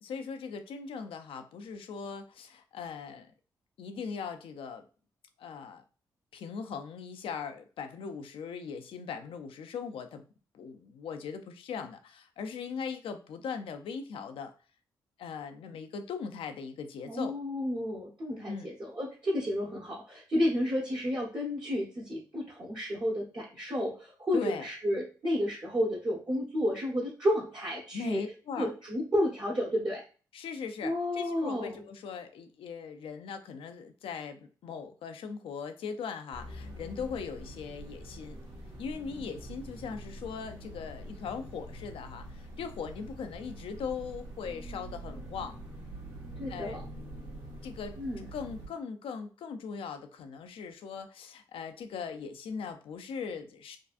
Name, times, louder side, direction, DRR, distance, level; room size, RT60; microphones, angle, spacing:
voice 1, 0.0-3.3 3.8-4.9 5.4-5.8 6.3-10.2 10.5-14.5 15.2-17.3 18.5-18.7 24.3-24.7 27.9-28.7 30.3-38.4 38.8-45.6 46.5-46.8 47.6-48.0 48.3-53.8, left 6 dB, 70° left, 7 dB, 0.5 m, -39 dB
voice 2, 17.1-28.2 28.6-30.0 30.8-31.8 46.4-46.8 48.0-48.3, left 1 dB, 45° right, -5 dB, 1.1 m, -31 dB
sound 1, 36.3-48.7, right 1 dB, 60° right, 1.7 m, -45 dB
3.5 x 2.3 x 2.5 m, 0.37 s
hypercardioid pair, 45°, 10 cm